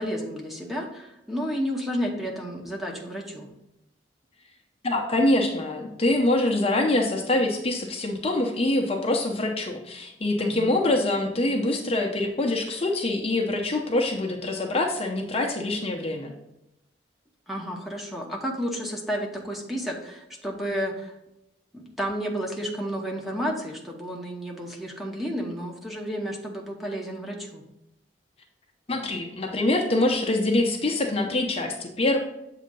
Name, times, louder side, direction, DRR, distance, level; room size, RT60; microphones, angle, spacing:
voice 1, 0.0-3.5 10.4-10.7 17.5-21.1 21.7-27.6, equal, ahead, -1 dB, 0.9 m, -31 dB
voice 2, 4.8-16.3 28.9-32.2, left 2 dB, 35° left, 1 dB, 0.7 m, -25 dB
7.5 x 2.8 x 5.3 m, 0.86 s
head